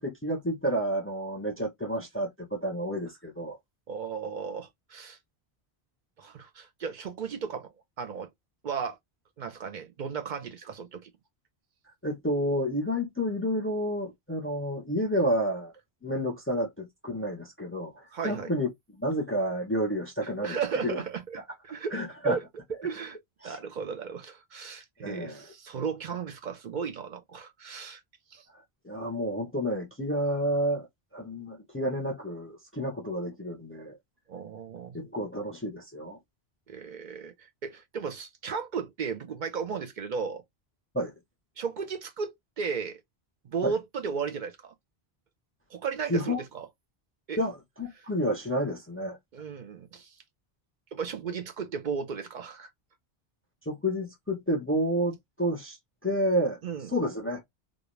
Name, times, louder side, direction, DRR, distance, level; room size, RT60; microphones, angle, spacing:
voice 1, 0.0-3.6 12.0-15.7 16.0-18.7 19.0-20.6 20.8-21.0 21.9-22.4 23.4-23.6 25.0-25.5 28.8-30.9 31.1-34.0 34.9-36.2 40.9-41.1 43.6-43.7 46.1-46.4 47.4-49.2 53.7-55.8 56.0-56.6 56.9-57.4, equal, 20° left, 0.4 m, -30 dB
voice 2, 3.9-5.2 6.2-7.7 8.0-8.3 8.6-9.0 9.4-11.1 18.1-18.5 20.4-22.4 22.8-23.2 23.4-28.0 28.3-28.5 34.3-35.0 36.7-40.4 41.6-43.0 43.4-44.7 45.7-46.7 47.3-47.4 48.0-48.1 49.3-50.2 50.9-52.7 56.6-56.9, right 6 dB, 55° right, 0.6 m, -35 dB
2.3 x 2.1 x 3.0 m
omnidirectional pair, 1.1 m